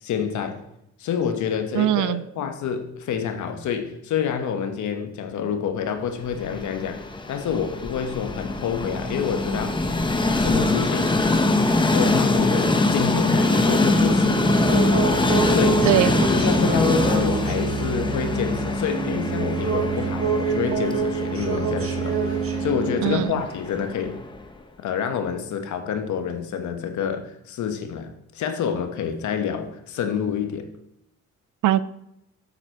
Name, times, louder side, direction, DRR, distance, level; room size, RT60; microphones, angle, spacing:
voice 1, 0.0-0.6 1.0-9.9 10.4-11.2 11.9-14.4 15.5-15.9 16.3-24.2 24.8-30.7, left 7 dB, 75° left, 6 dB, 1.1 m, -28 dB
voice 2, 1.7-2.2 15.9-16.3 23.0-23.3 31.6-31.8, right 13 dB, 85° right, 16 dB, 0.5 m, -21 dB
Train, 6.3-24.4, left 2 dB, 15° left, 0.9 m, -23 dB
sound 1, 13.9-23.3, right 4 dB, 45° right, 1.6 m, -26 dB
7.8 x 6.2 x 4.4 m, 0.80 s
cardioid pair, 90°, 30 cm